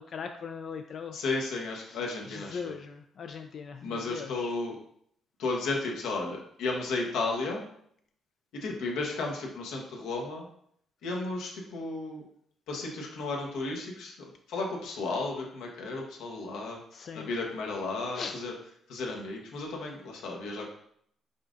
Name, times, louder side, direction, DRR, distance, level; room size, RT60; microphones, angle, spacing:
voice 1, 0.1-1.1 2.5-3.8 4.1-4.5 16.9-17.3 18.2-18.3, left 6 dB, 55° left, 5 dB, 0.3 m, -39 dB
voice 2, 1.1-2.7 3.8-4.8 5.4-7.6 8.5-10.5 11.0-12.2 12.7-14.1 14.5-16.8 17.1-18.5 18.9-20.7, left 3 dB, 85° left, -1 dB, 1.0 m, -33 dB
5.5 x 3.7 x 2.6 m, 0.68 s
cardioid pair, 90°, 0 cm